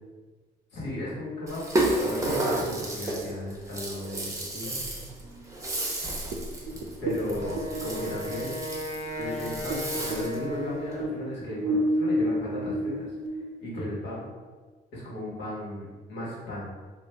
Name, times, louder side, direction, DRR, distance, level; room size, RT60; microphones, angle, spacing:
voice 1, 0.7-5.1 7.0-8.5 9.2-14.3 14.9-16.7, left 1 dB, 80° left, -6 dB, 1.3 m, -35 dB
Rattle (instrument), 1.5-10.4, right 1 dB, 15° right, 0.7 m, -32 dB
sound 1, 6.3-9.8 10.1-14.2, equal, 85° right, 0.5 m, -30 dB
Wind instrument woodwind instrument, 7.1-11.4, left 1 dB, 35° left, 0.6 m, -36 dB
3.2 x 2.4 x 3.3 m, 1.4 s
cardioid pair, 85°, 19 cm